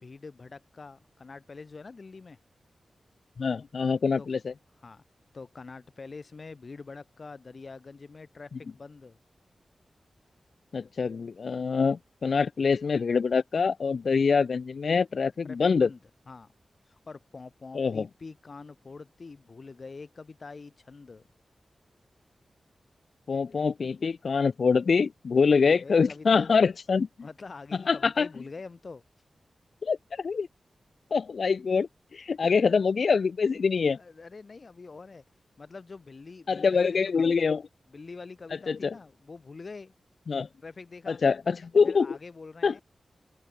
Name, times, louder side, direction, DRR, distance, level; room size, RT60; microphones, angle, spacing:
voice 1, 0.0-2.4 4.2-4.3 4.8-5.0 5.3-9.2 15.4-16.0 16.3-16.5 16.8-21.2 23.5-23.7 25.6-26.6 27.2-29.0 32.4-32.5 33.9-35.2 35.6-37.4 37.9-39.9 40.6-41.2 41.8-42.8, left 4 dB, 45° left, 1.1 m, -45 dB
voice 2, 3.4-4.5 10.7-15.9 17.7-18.0 23.3-27.1 27.9-28.3 29.8-30.5 31.1-34.0 36.5-37.6 38.7-38.9 40.3-40.5 41.1-42.2 42.6-42.8, left 5 dB, 60° left, 0.3 m, -25 dB
wide cardioid pair, 130°, 0 cm